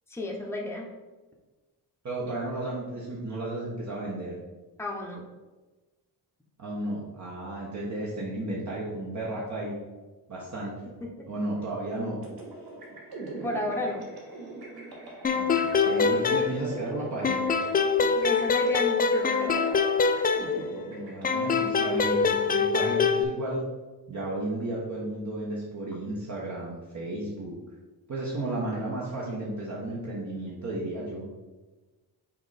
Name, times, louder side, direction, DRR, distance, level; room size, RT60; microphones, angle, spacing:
voice 1, 0.1-0.9 4.8-5.2 11.0-11.3 13.4-14.1 18.2-19.6, left 2 dB, 5° left, -1 dB, 0.9 m, -32 dB
voice 2, 2.0-4.4 6.6-9.8 10.3-10.9 11.3-12.2 15.3-17.4 20.9-23.6 24.1-27.6 28.1-31.3, right 1 dB, 45° right, -5 dB, 1.2 m, -33 dB
sound 1, 12.2-22.7, right 2 dB, 65° right, 1.6 m, -41 dB
sound 2, 15.2-16.9 17.2-20.9 21.2-23.2, left 5 dB, 25° left, 0.3 m, -24 dB
5.8 x 4.2 x 4.1 m, 1.2 s
cardioid pair, 135°, 39 cm